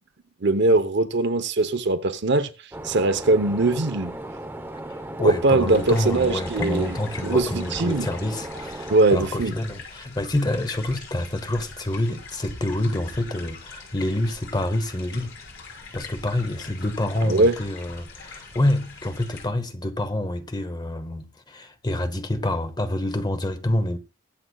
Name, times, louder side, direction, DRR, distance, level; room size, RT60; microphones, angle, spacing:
voice 1, 0.4-2.5 2.8-4.1 5.2-7.0 7.2-8.1 8.9-9.5 17.2-17.6, right 2 dB, 60° right, 0.9 m, -21 dB
sound 1, 2.7-9.0, right 1 dB, 10° right, 0.9 m, -36 dB
voice 2, 5.2-15.3 15.9-24.0, left 1 dB, 20° left, 0.9 m, -27 dB
sound 2, 5.7-19.5, left 4 dB, 70° left, 5.3 m, -42 dB
22.5 x 7.7 x 2.4 m
head